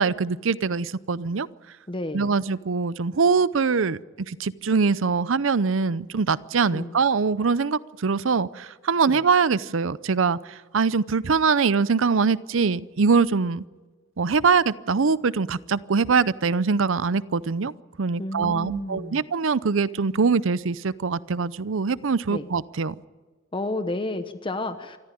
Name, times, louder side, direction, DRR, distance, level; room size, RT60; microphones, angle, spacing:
voice 1, 0.0-1.5 2.1-4.0 4.3-13.6 14.2-17.7 18.0-23.0, right 5 dB, 80° right, 18 dB, 0.6 m, -23 dB
voice 2, 1.9-2.3 6.7-7.0 9.1-9.2 18.2-19.2 22.3-22.5 23.5-25.0, left 2 dB, 25° left, 9 dB, 0.9 m, -31 dB
25.5 x 14.0 x 10.0 m, 1.4 s
head